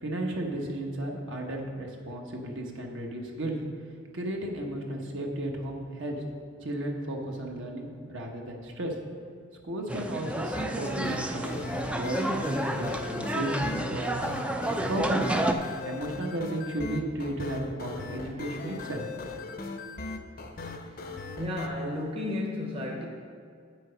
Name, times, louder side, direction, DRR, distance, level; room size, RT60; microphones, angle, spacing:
voice 1, 0.0-3.6 4.1-6.1 6.6-8.9 9.7-11.6 11.9-14.1 14.9-15.5 15.8-19.4, right 1 dB, 65° right, 0 dB, 1.2 m, -34 dB
sound 1, 9.9-15.5, right 1 dB, 5° right, 0.3 m, -30 dB
sound 2, 10.5-21.7, left 3 dB, 45° left, 0.6 m, -39 dB
voice 2, 21.4-23.1, left 1 dB, 25° right, -1 dB, 0.9 m, -33 dB
8.9 x 6.4 x 5.1 m, 2.3 s
head